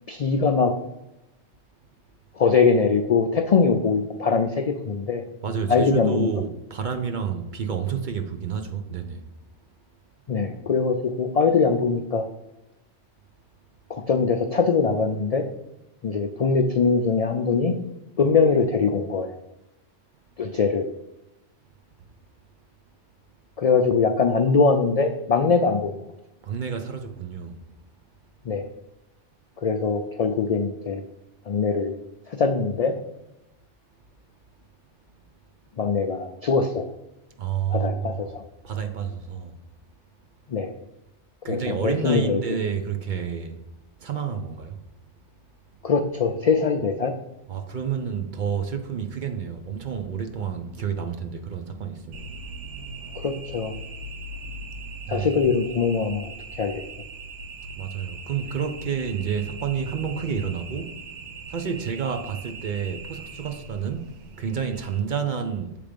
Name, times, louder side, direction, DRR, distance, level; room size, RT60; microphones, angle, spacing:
voice 1, 0.1-0.7 2.4-5.2 5.7-6.3 10.3-12.2 13.9-15.4 16.0-17.7 18.2-19.4 20.4-20.9 23.6-26.0 28.5-28.7 29.6-31.0 31.5-32.0 32.3-32.9 35.8-36.9 37.7-38.4 40.5-40.7 41.5-42.4 45.8-47.1 53.2-53.7 55.1-56.3 56.6-56.7, left 5 dB, 75° left, 6 dB, 0.3 m, -22 dB
voice 2, 5.4-9.2 26.4-27.6 37.4-38.1 38.6-39.5 41.4-43.6 44.0-44.8 47.5-53.2 54.3-55.3 57.8-61.2 61.5-65.8, right 7 dB, 55° right, 6 dB, 0.6 m, -30 dB
sound 1, 52.1-65.0, right 3 dB, 90° right, 1.0 m, -40 dB
7.2 x 3.4 x 5.0 m, 0.93 s
omnidirectional pair, 1.2 m